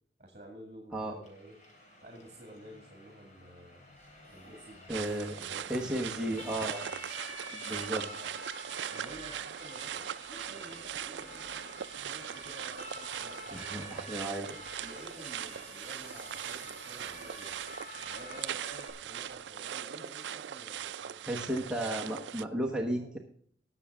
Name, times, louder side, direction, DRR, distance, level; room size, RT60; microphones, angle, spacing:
voice 1, 0.2-1.6 2.0-3.8 4.3-7.0 7.9-8.3 8.9-13.9 14.4-17.6 17.9-22.2 22.6-23.2, right 1 dB, 40° right, 3 dB, 2.2 m, -51 dB
Siren, 1.2-18.9, left 1 dB, 45° left, 3.6 m, -49 dB
sound 1, 3.9-19.4, right 1 dB, 10° left, 5.3 m, -61 dB
voice 2, 4.9-5.4 5.7-6.8 7.5-8.0 13.5-14.5 21.3-23.2, right 1 dB, 5° right, -1 dB, 1.2 m, -34 dB
sound 2, 4.9-22.4, right 10 dB, 85° right, 0.4 m, -40 dB
19.5 x 7.1 x 3.6 m, 0.62 s
head